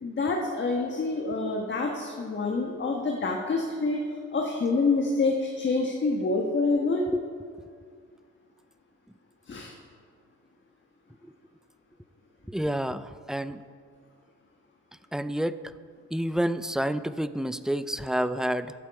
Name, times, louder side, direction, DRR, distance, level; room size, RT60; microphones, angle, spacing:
voice 1, 0.0-4.0 4.3-7.0 9.5-9.7, left 3 dB, 40° left, 0 dB, 1.3 m, -27 dB
voice 2, 12.5-13.6 15.1-15.7 16.1-18.7, right 1 dB, ahead, 13 dB, 0.3 m, -29 dB
14.0 x 8.3 x 4.8 m, 2.1 s
cardioid pair, 90°, 30 cm